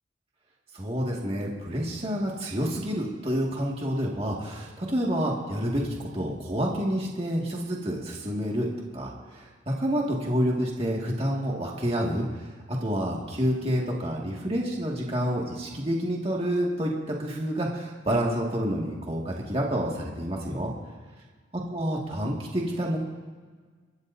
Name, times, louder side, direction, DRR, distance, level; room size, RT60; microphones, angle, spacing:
voice 1, 0.7-12.5 12.8-20.7 21.7-23.0, equal, 30° right, -2 dB, 2.1 m, -28 dB
23.0 x 13.5 x 2.8 m, 1.5 s
head